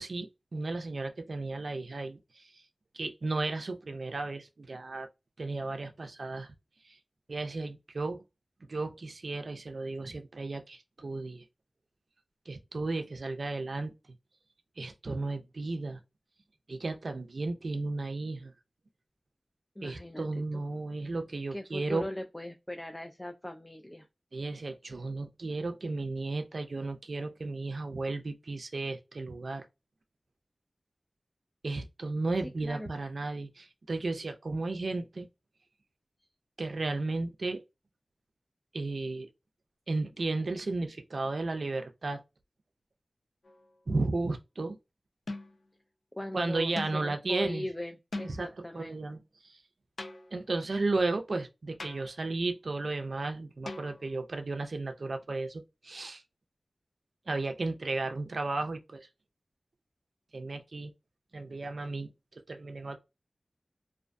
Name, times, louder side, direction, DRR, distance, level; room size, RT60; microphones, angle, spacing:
voice 1, 0.0-2.6 2.9-5.1 5.4-6.5 6.8-7.0 7.3-8.2 8.6-11.4 12.5-13.9 14.8-16.0 16.7-18.5 19.8-22.1 24.3-29.7 31.6-35.3 36.6-37.6 38.7-39.3 39.9-42.2 43.9-44.8 46.3-47.6 48.2-48.5 48.7-49.6 50.3-56.2 57.3-59.1 60.3-60.9 61.3-63.0, right 3 dB, 70° right, 0.4 m, -34 dB
voice 2, 19.8-20.2 20.5-20.6 21.5-24.1 32.6-32.9 46.2-49.0, left 1 dB, 15° left, 0.3 m, -39 dB
sound 1, 43.4-43.8 45.3-45.7 46.8-47.1 48.1-48.6 50.0-50.5 51.8-52.3 53.7-54.3, left 2 dB, 85° left, 0.4 m, -41 dB
2.4 x 2.2 x 2.5 m
wide cardioid pair, 65°, 0 cm